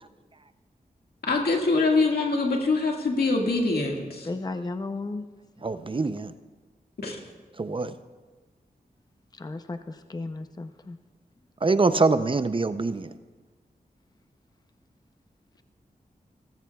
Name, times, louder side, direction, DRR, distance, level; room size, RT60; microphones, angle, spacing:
voice 1, 1.3-4.3 7.0-7.2, left 3 dB, 85° left, 1.8 m, -24 dB
voice 2, 4.2-5.3 9.3-11.0, left 3 dB, 25° left, 0.6 m, -34 dB
voice 3, 5.6-6.3 7.6-7.9 11.6-13.1, right 3 dB, 35° right, 0.5 m, -24 dB
18.0 x 14.5 x 2.3 m
wide cardioid pair, 65°, 16 cm